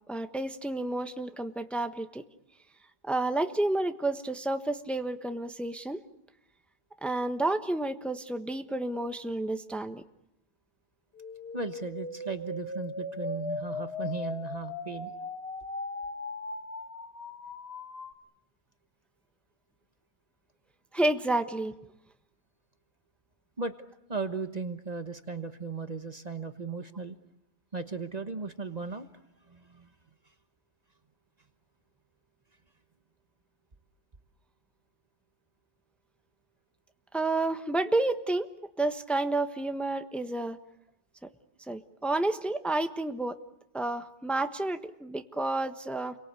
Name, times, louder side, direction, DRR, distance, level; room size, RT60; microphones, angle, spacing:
voice 1, 0.1-2.2 3.1-6.0 7.0-10.0 20.9-21.7 37.1-38.5 38.8-40.6 41.7-43.4 43.7-46.2, right 2 dB, ahead, 7 dB, 1.2 m, -30 dB
sound 1, 11.1-18.1, left 3 dB, 65° left, 2.0 m, -38 dB
voice 2, 11.5-15.1 23.6-23.7 24.1-27.1 27.7-29.1 29.5-29.9, right 4 dB, 35° right, 9 dB, 1.3 m, -36 dB
30.0 x 24.0 x 8.4 m, 0.80 s
omnidirectional pair, 1.2 m